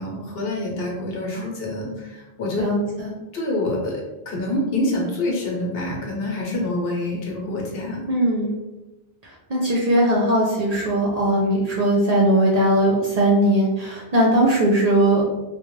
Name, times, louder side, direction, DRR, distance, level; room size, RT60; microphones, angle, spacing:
voice 1, 0.0-2.6 3.3-8.0, left 1 dB, 75° left, -2 dB, 0.9 m, -26 dB
voice 2, 2.6-3.1 8.1-8.5 9.5-15.2, right 1 dB, 55° right, -4 dB, 0.5 m, -19 dB
2.4 x 2.1 x 3.0 m, 1.1 s
omnidirectional pair, 1.0 m